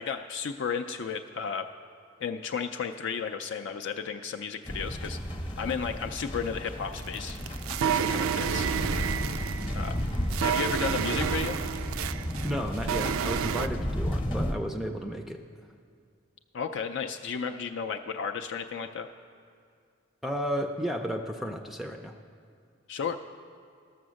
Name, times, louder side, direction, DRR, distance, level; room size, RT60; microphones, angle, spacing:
voice 1, 0.0-1.7 2.2-5.2 5.6-7.4 7.9-8.7 9.7-10.0 10.4-11.6 16.5-19.1 22.9-23.2, left 6 dB, 65° left, 4 dB, 0.4 m, -33 dB
sound 1, 4.6-14.5, equal, 25° left, 0.8 m, -33 dB
sound 2, 7.0-13.7, right 8 dB, 90° right, 0.3 m, -30 dB
voice 2, 12.4-15.4 20.2-22.2, equal, ahead, 4 dB, 0.4 m, -33 dB
12.0 x 7.0 x 6.3 m, 2.3 s
head